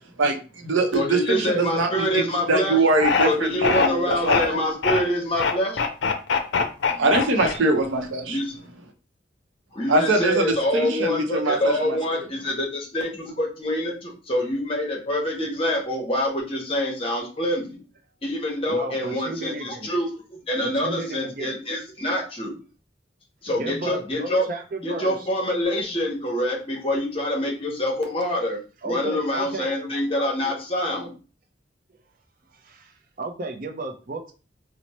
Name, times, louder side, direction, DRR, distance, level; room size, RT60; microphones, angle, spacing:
voice 1, 0.2-4.6 7.0-8.4 9.9-10.5 10.7-12.3, right 2 dB, 85° right, 4 dB, 0.6 m, -23 dB
voice 2, 0.9-5.8 6.8-7.1 8.3-8.5 9.7-17.8 18.2-22.5 23.4-24.4 24.8-28.6 28.8-31.1, left 1 dB, 30° left, 0 dB, 0.8 m, -26 dB
sound 1, 3.0-3.3 3.6-4.5 4.8-5.0 5.3-7.9, left 5 dB, 75° left, 0.5 m, -22 dB
voice 3, 18.7-19.9 20.6-21.6 23.6-25.3 28.8-29.9 32.5-34.3, right 2 dB, 45° right, 4 dB, 0.5 m, -34 dB
2.9 x 2.0 x 4.1 m, 0.36 s
head